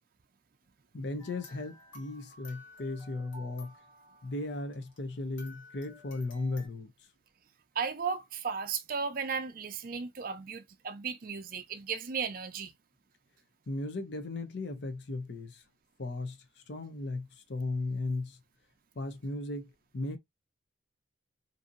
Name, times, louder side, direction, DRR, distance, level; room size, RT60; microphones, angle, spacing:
voice 1, 0.9-3.7 4.2-6.9 13.7-15.6 16.0-16.4 16.7-18.4 19.0-20.2, left 2 dB, 60° left, 0.6 m, -36 dB
sound 1, 1.2-5.1 5.4-6.7, left 2 dB, 75° left, 1.2 m, -54 dB
voice 2, 7.8-12.7, right 6 dB, 45° right, 0.4 m, -35 dB
2.7 x 2.6 x 2.5 m
head